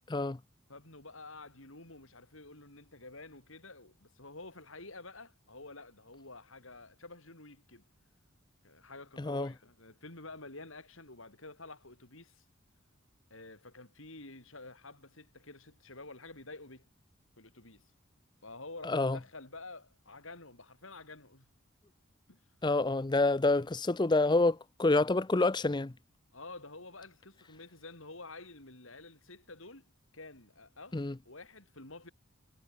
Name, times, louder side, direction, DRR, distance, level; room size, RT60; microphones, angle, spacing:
voice 1, 0.1-0.4 9.2-9.5 18.8-19.2 22.6-25.9 30.9-31.2, left 2 dB, 20° left, 0.5 m, -28 dB
voice 2, 0.7-7.8 8.6-12.4 13.3-16.9 17.4-17.8 18.4-21.5 22.3-22.4 26.3-29.9 30.1-32.1, left 2 dB, 70° left, 6.0 m, -49 dB
head